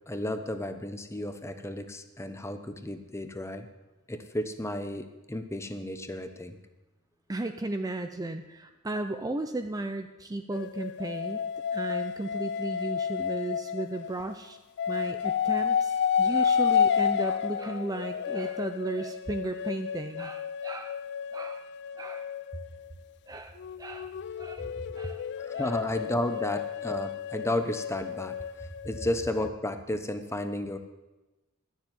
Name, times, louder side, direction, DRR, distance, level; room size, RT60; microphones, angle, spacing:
voice 1, 0.1-3.7 4.1-6.6 25.4-28.4 28.8-30.8, left 1 dB, 10° left, 8 dB, 0.9 m, -33 dB
voice 2, 7.3-14.6 14.9-21.0 21.3-21.7 22.0-22.3 23.3-25.3 25.5-25.8, right 2 dB, 15° right, 7 dB, 0.5 m, -35 dB
sound 1, 10.5-14.3 14.8-22.9 23.6-29.5, left 7 dB, 50° left, 0.3 m, -31 dB
12.0 x 7.3 x 9.5 m, 1.1 s
head